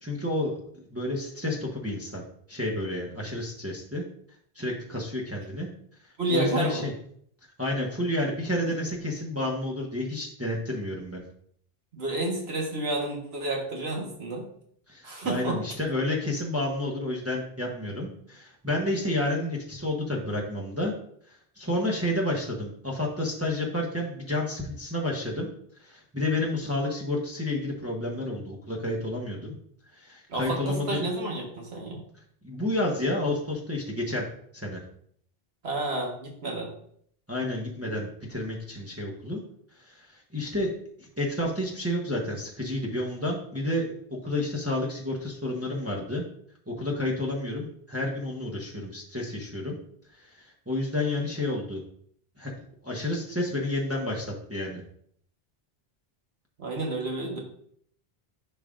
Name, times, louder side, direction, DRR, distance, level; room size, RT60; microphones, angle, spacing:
voice 1, 0.0-4.0 4.5-5.7 6.3-6.9 7.6-11.2 14.9-20.9 21.3-25.5 25.8-29.5 29.9-31.0 32.4-34.3 34.5-34.8 37.3-39.4 39.8-40.7 41.0-46.2 46.7-49.8 50.1-51.8 52.4-52.5 52.8-54.8, left 1 dB, 15° right, -2 dB, 1.1 m, -30 dB
voice 2, 6.2-6.8 11.9-14.4 15.0-15.6 30.3-32.0 35.6-36.7 56.6-57.4, right 2 dB, 85° right, 0 dB, 1.7 m, -30 dB
11.0 x 5.3 x 2.5 m, 0.64 s
omnidirectional pair, 1.0 m